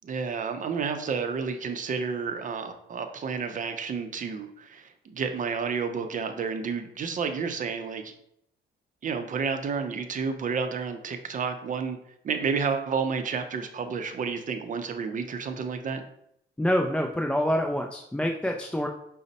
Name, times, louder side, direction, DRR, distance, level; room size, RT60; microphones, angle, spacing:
voice 1, 0.0-8.1 9.0-12.0 12.2-16.0, right 5 dB, 40° right, 7 dB, 0.5 m, -30 dB
voice 2, 16.6-18.9, equal, 5° left, 2 dB, 0.3 m, -26 dB
5.0 x 2.1 x 4.0 m, 0.74 s
cardioid pair, 90°, 20 cm